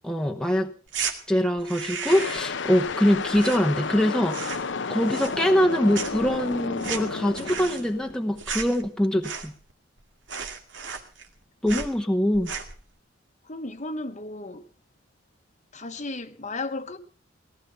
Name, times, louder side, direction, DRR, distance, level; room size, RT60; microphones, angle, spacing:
voice 1, 0.0-0.7 1.3-4.6 4.9-9.5 11.6-12.5, equal, 5° left, 1.1 m, -23 dB
sound 1, 0.9-1.2 1.6-2.6 2.8-4.0 4.3-4.8 5.1-5.7 5.9-9.7 10.0-10.1 10.3-11.4 11.7-11.9 12.3-12.8, right 6 dB, 70° right, 2.3 m, -34 dB
sound 2, 2.1-8.4, left 4 dB, 65° left, 0.8 m, -32 dB
voice 2, 13.4-14.6 15.7-17.0, left 2 dB, 40° left, 1.2 m, -34 dB
19.0 x 12.5 x 5.6 m
head